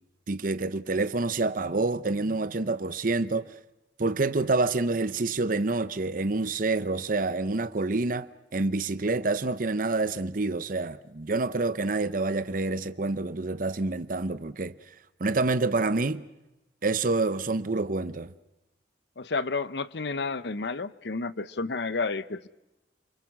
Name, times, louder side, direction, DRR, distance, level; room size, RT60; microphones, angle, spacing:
voice 1, 0.3-3.5 4.0-14.7 15.2-16.2 16.8-18.3, right 3 dB, 50° right, 0.8 m, -27 dB
voice 2, 19.2-22.5, left 3 dB, 70° left, 0.8 m, -31 dB
28.0 x 24.5 x 6.1 m
head